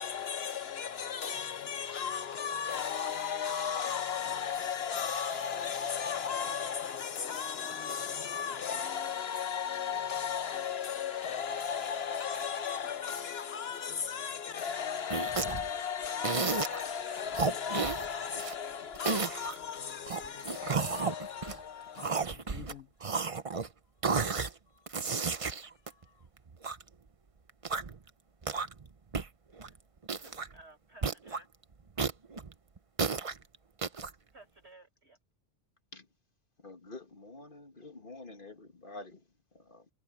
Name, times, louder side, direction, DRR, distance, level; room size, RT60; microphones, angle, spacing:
voice 1, 0.0-22.9 25.9-26.1, left 7 dB, 65° left, 0.8 m, -35 dB
sound 1, 15.1-15.7 16.2-16.9 17.3-18.5 18.9-19.6 20.1-21.6 22.0-22.7 23.0-23.7 24.0-24.5 24.9-26.8 27.5-28.0 28.4-28.9 29.1-29.3 29.6-29.7 30.0-30.5 31.0-31.4 32.0-33.4 33.8-34.1, right 5 dB, 30° right, 0.8 m, -32 dB
voice 2, 30.2-31.5 34.3-35.2, right 2 dB, 65° right, 7.3 m, -56 dB
voice 3, 36.6-39.9, left 2 dB, 45° left, 1.9 m, -48 dB
omnidirectional pair, 1.2 m